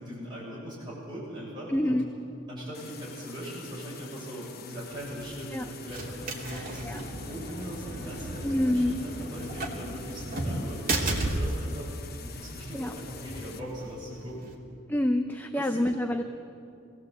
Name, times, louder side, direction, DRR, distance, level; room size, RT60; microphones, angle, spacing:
voice 1, 0.0-2.0 2.5-11.9 12.2-14.5 15.5-15.9, equal, 20° right, -6 dB, 6.9 m, -40 dB
voice 2, 1.7-2.1 5.5-5.7 6.5-7.0 8.4-9.0 12.7-12.9 14.9-16.2, left 1 dB, 10° left, 6 dB, 0.7 m, -27 dB
sound 1, 2.7-13.6, left 6 dB, 50° left, 1.2 m, -47 dB
sound 2, 4.9-14.5, right 2 dB, 40° right, 3.0 m, -35 dB
25.5 x 18.0 x 8.1 m, 2.6 s
head